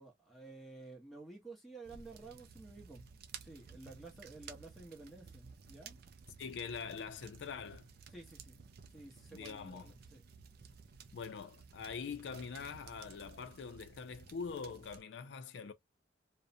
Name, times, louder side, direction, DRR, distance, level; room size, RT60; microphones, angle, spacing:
voice 1, 0.0-3.1 3.4-6.0 8.1-8.6 8.9-10.2, right 3 dB, ahead, 0.8 m, -52 dB
sound 1, 1.8-15.0, right 6 dB, 55° right, 0.4 m, -55 dB
voice 2, 6.4-7.9 9.3-9.9 11.1-15.7, left 5 dB, 65° left, 0.4 m, -44 dB
2.5 x 2.1 x 2.6 m
head